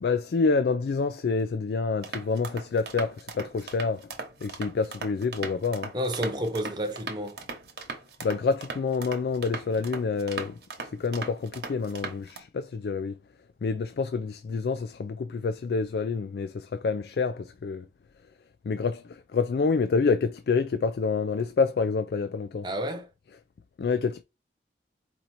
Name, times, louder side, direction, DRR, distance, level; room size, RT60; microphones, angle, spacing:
voice 1, 0.0-4.1 4.4-5.9 8.2-10.6 11.0-13.1 13.6-17.8 18.7-22.7 23.8-24.2, left 4 dB, 60° left, 0.3 m, -27 dB
sound 1, 2.0-12.4, right 4 dB, 65° right, 1.0 m, -39 dB
voice 2, 5.9-7.4 22.6-23.1, equal, 25° right, 0.8 m, -30 dB
4.4 x 2.6 x 4.1 m
head